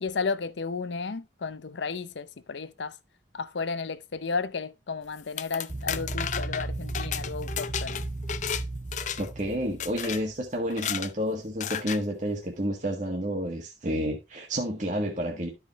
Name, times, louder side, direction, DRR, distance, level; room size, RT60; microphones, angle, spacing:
voice 1, 0.0-2.9 3.3-8.0, left 4 dB, 85° left, 0.7 m, -33 dB
sound 1, 5.2-8.6 8.9-9.4 9.8-10.2 10.7-11.1 11.6-12.0, left 8 dB, 45° left, 0.5 m, -33 dB
sound 2, 5.7-10.4, right 2 dB, 25° right, 0.5 m, -35 dB
voice 2, 9.2-15.5, equal, 45° right, 1.5 m, -30 dB
12.5 x 5.0 x 3.0 m
head